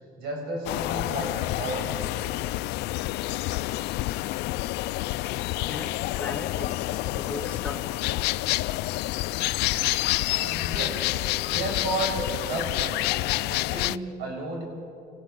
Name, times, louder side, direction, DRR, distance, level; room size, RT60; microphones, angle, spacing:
voice 1, 0.2-2.2 10.0-11.1 11.4-14.6, right 2 dB, 75° right, 1 dB, 6.0 m, -33 dB
sound 1, 0.7-14.0, left 18 dB, 85° left, 0.4 m, -28 dB
voice 2, 5.6-7.9, left 3 dB, 5° left, 1 dB, 1.7 m, -37 dB
27.0 x 15.5 x 6.1 m, 2.4 s
cardioid pair, 110°, 17 cm